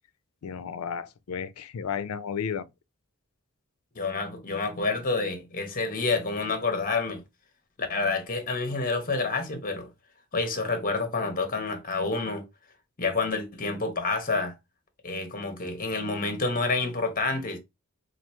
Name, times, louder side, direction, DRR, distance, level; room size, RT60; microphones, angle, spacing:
voice 1, 0.4-2.7, left 7 dB, 90° left, 0.4 m, -33 dB
voice 2, 3.9-7.2 7.8-9.9 10.3-12.4 13.0-14.5 15.0-17.6, left 3 dB, 40° left, 1.0 m, -28 dB
3.0 x 2.5 x 4.3 m
head